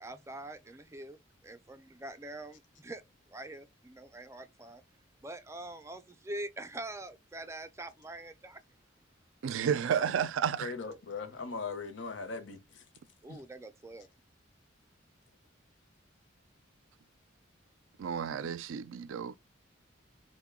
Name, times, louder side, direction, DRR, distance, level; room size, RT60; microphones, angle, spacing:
voice 1, 0.0-1.2 1.5-3.0 3.3-4.8 5.2-8.6 13.2-14.1, right 1 dB, 15° right, 0.4 m, -44 dB
voice 2, 9.4-10.7 18.0-19.3, right 8 dB, 85° right, 0.4 m, -31 dB
voice 3, 10.6-12.8 13.3-13.4, left 4 dB, 70° left, 0.7 m, -40 dB
3.7 x 2.1 x 3.5 m
head